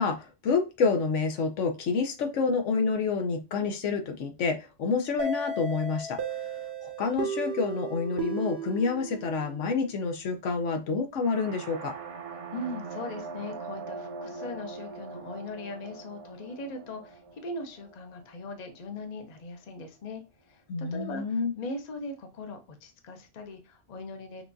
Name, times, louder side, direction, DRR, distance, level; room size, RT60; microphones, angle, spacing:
voice 1, 0.0-6.2 6.8-11.9 20.7-21.5, left 4 dB, 80° left, 5 dB, 1.1 m, -28 dB
sound 1, 5.2-9.9, right 4 dB, 65° right, 0.9 m, -35 dB
sound 2, 11.2-19.1, right 4 dB, 50° right, 0.4 m, -42 dB
voice 2, 12.5-20.2 20.5-24.4, left 2 dB, 40° left, 5 dB, 0.7 m, -39 dB
6.0 x 2.3 x 2.6 m, 0.29 s
omnidirectional pair, 1.3 m